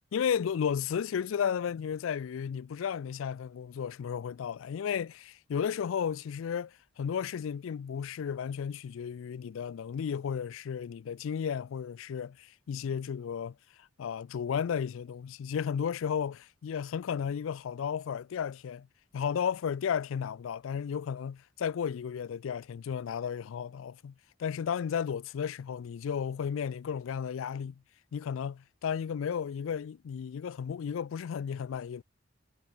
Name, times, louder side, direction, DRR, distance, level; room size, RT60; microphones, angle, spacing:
voice 1, 0.1-13.6 14.0-18.9 19.1-24.1 24.4-27.8 28.1-32.0, left 7 dB, 80° left, 0.4 m, -33 dB
head